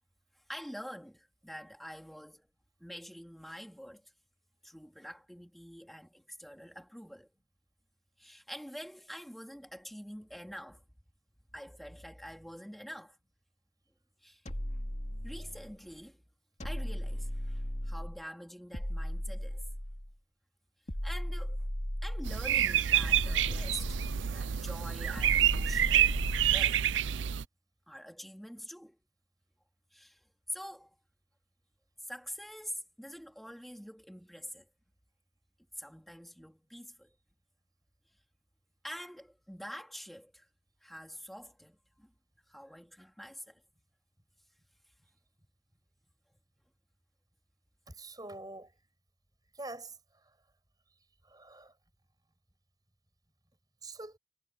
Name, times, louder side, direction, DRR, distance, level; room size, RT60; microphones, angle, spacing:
voice 1, 0.3-2.5 2.8-4.1 4.6-7.3 8.2-10.8 11.5-13.2 14.2-14.4 15.2-16.2 16.6-19.6 21.0-21.6 22.0-24.0 24.3-26.9 27.9-29.0 29.9-31.0 32.0-34.7 35.8-37.1 38.8-40.5 40.8-42.1 42.5-43.6, equal, ahead, 3.7 m, -46 dB
sound 1, 14.5-15.8 16.6-18.2 18.7-20.2 20.9-22.5 23.0-24.4 25.2-26.8, equal, 40° left, 2.5 m, -36 dB
sound 2, 22.2-27.4, right 10 dB, 80° right, 0.5 m, -28 dB
voice 2, 47.9-48.7 49.5-50.0 51.3-51.7 53.8-54.2, right 2 dB, 20° right, 6.1 m, -45 dB
head